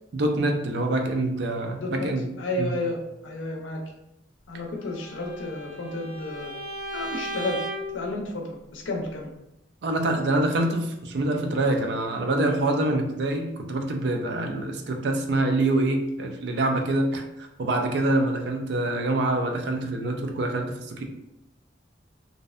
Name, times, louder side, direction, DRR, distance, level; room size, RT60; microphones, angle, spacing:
voice 1, 0.1-2.3 2.6-2.7 9.8-21.0, right 2 dB, 60° right, 4 dB, 0.4 m, -25 dB
voice 2, 1.8-2.1 2.4-3.8 4.5-6.5 6.9-7.6 7.9-9.3, left 2 dB, 90° left, 1 dB, 0.5 m, -31 dB
Bowed string instrument, 5.0-8.0, right 1 dB, 75° right, 1.3 m, -35 dB
2.5 x 2.1 x 2.4 m, 0.86 s
head